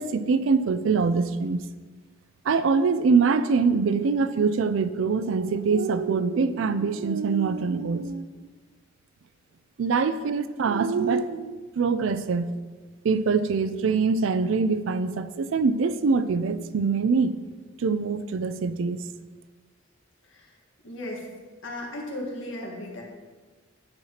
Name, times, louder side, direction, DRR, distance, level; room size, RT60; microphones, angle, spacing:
voice 1, 0.0-1.6 2.4-8.3 9.8-12.5 13.0-17.4 17.8-19.0, right 4 dB, 75° right, 13 dB, 0.4 m, -24 dB
voice 2, 20.8-21.3 21.6-23.0, left 1 dB, 75° left, -1 dB, 1.6 m, -36 dB
9.8 x 5.7 x 2.9 m, 1.3 s
head